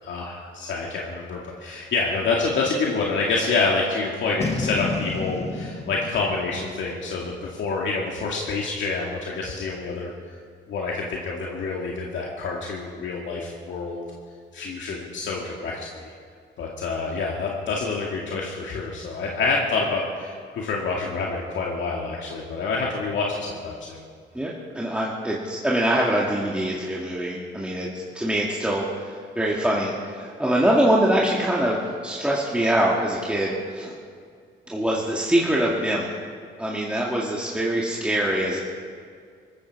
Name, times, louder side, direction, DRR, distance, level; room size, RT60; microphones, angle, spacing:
voice 1, 0.0-10.1 10.7-14.1 14.5-16.1 16.6-24.0, left 3 dB, 70° left, -2 dB, 2.2 m, -27 dB
Boom, 4.4-7.7, left 4 dB, 30° left, 1.4 m, -31 dB
voice 2, 24.3-27.9 28.1-33.9 34.7-36.1 36.6-38.6, right 1 dB, 5° right, -4 dB, 2.2 m, -24 dB
19.0 x 14.5 x 4.8 m, 2.1 s
cardioid pair, 90°, 20 cm